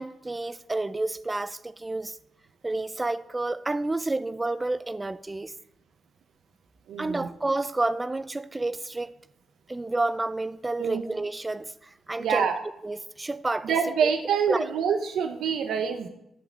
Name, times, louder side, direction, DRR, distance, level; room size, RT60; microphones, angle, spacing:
voice 1, 0.0-2.2 2.6-5.5 7.0-9.1 9.7-12.5 12.8-13.8 14.0-14.1 14.5-14.7, right 2 dB, 20° right, 0.3 m, -30 dB
voice 2, 6.9-7.3 10.8-11.0 12.2-12.6 13.6-16.1, right 7 dB, 90° right, 0.6 m, -26 dB
11.0 x 5.0 x 7.0 m
cardioid pair, 95°, 0 cm